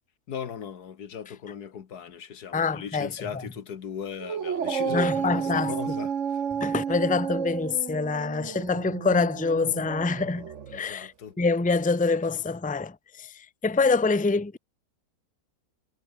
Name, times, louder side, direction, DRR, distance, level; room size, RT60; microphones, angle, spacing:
voice 1, 0.3-6.4 10.7-11.4, left 7 dB, 80° left, 1.9 m, -38 dB
voice 2, 2.5-3.1 4.9-5.7 6.6-11.1 11.4-14.6, left 4 dB, 5° left, 0.8 m, -26 dB
Dog, 4.2-10.8, right 7 dB, 50° right, 1.5 m, -31 dB
omnidirectional pair, 1.7 m